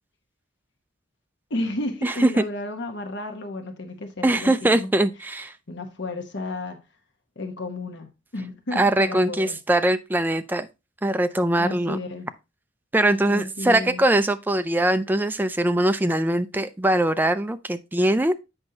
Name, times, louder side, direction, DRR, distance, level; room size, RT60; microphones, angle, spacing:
voice 1, 1.5-5.1 5.7-6.8 7.4-8.1 8.3-9.6 11.6-12.3 13.3-14.0, left 2 dB, 65° left, 1.1 m, -32 dB
voice 2, 2.0-2.4 4.2-5.5 8.8-10.7 11.0-12.0 12.9-18.3, right 1 dB, 10° right, 0.4 m, -22 dB
8.0 x 5.3 x 2.8 m
head